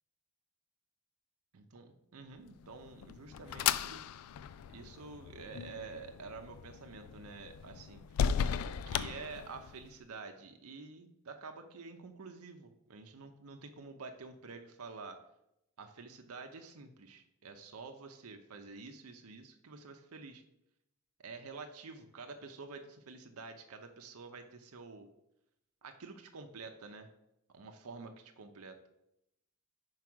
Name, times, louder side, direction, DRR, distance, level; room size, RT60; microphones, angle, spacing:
voice 1, 1.5-4.0 4.7-8.0 8.6-15.2 15.8-20.4 21.2-25.1 25.8-27.1 27.5-28.8, right 4 dB, 80° right, 5 dB, 0.7 m, -49 dB
sound 1, 2.6-9.9, left 8 dB, 75° left, 0.3 m, -37 dB
4.7 x 4.7 x 6.1 m, 0.82 s
head